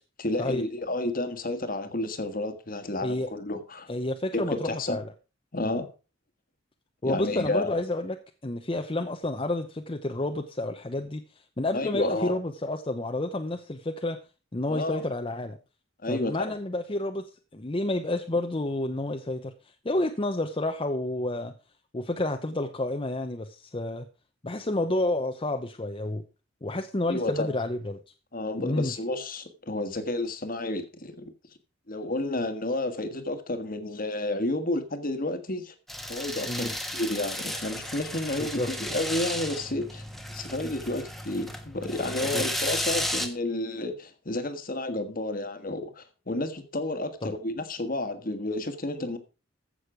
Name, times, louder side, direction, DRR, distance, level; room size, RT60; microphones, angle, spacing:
voice 1, 0.2-3.9 4.3-5.0 5.5-5.9 7.0-7.8 11.7-12.3 14.7-15.0 16.0-16.5 27.1-27.5 28.3-31.3 31.9-35.7 36.1-40.0 40.3-49.2, left 2 dB, 45° left, 1.5 m, -31 dB
voice 2, 3.9-5.1 5.6-5.8 7.0-8.2 8.4-14.2 14.5-15.6 16.1-19.5 19.8-21.5 21.9-24.1 24.4-26.2 26.6-28.0 28.6-28.9 36.5-36.7 38.5-38.7 42.2-42.4 47.2-47.3, left 1 dB, 25° left, 0.8 m, -30 dB
sound 1, 35.9-43.3, left 1 dB, ahead, 1.3 m, -34 dB
15.0 x 6.4 x 4.9 m
head